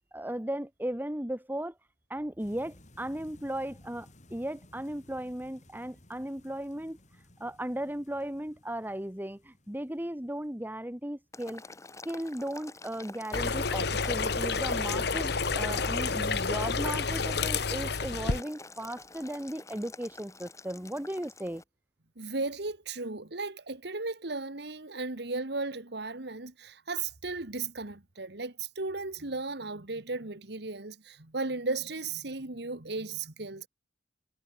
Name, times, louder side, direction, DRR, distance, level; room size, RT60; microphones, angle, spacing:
voice 1, 0.1-1.7 2.1-7.0 7.4-11.6 12.0-21.6, right 1 dB, 10° right, 2.0 m, -36 dB
sound 1, 2.4-11.4, left 1 dB, 45° left, 5.3 m, -58 dB
Boiling, 11.3-21.6, left 3 dB, 20° left, 3.6 m, -48 dB
sound 2, 13.3-18.4, left 4 dB, 65° left, 1.5 m, -29 dB
voice 2, 22.2-33.7, right 3 dB, 65° right, 2.1 m, -35 dB
head